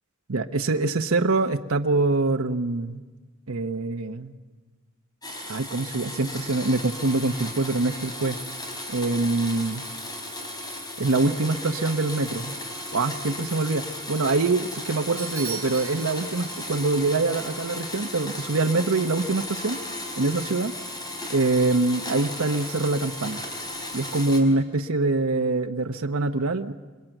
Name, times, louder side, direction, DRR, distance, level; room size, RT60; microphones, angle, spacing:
voice 1, 0.3-3.0 3.5-4.3 5.5-8.4 8.9-9.8 11.0-12.6 12.9-19.8 20.2-20.7 21.3-23.4 23.9-26.7, right 3 dB, 80° right, 4 dB, 1.0 m, -24 dB
Domestic sounds home sounds, 5.2-24.4, left 1 dB, 20° left, 4.5 m, -35 dB
Bell / Doorbell, 15.2-17.0, right 8 dB, 15° right, 5.6 m, -39 dB
28.5 x 22.0 x 9.1 m, 1.3 s
head